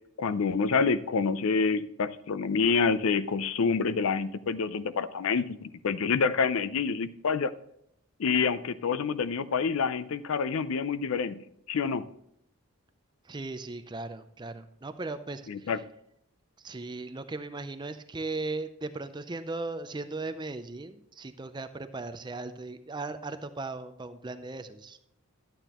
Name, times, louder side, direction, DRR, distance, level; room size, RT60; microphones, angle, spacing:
voice 1, 0.2-7.5 8.2-11.4 11.7-12.1 15.5-15.8, left 5 dB, 65° left, 15 dB, 0.4 m, -27 dB
voice 2, 13.2-15.7 16.6-25.0, right 3 dB, 20° right, 10 dB, 0.5 m, -37 dB
11.5 x 9.0 x 3.0 m, 0.78 s
head